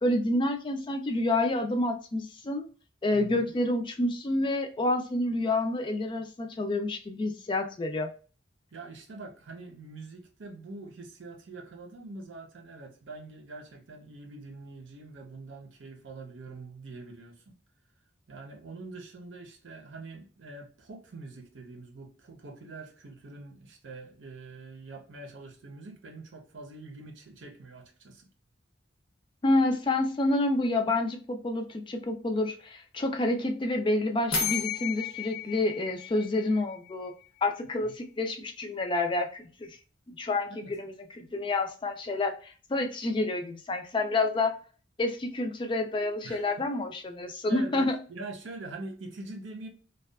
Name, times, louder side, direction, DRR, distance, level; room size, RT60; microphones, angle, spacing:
voice 1, 0.0-2.7 3.0-8.1 29.4-37.1 37.4-39.7 40.1-44.6 45.0-48.0, left 2 dB, 25° left, 0.3 m, -28 dB
voice 2, 3.1-3.5 8.7-17.6 18.3-28.3 37.8-37.9 40.5-40.7 46.2-46.7 47.5-49.7, right 3 dB, 80° right, 0.7 m, -44 dB
sound 1, 34.3-37.1, left 6 dB, 90° left, 0.7 m, -33 dB
2.6 x 2.2 x 2.3 m
head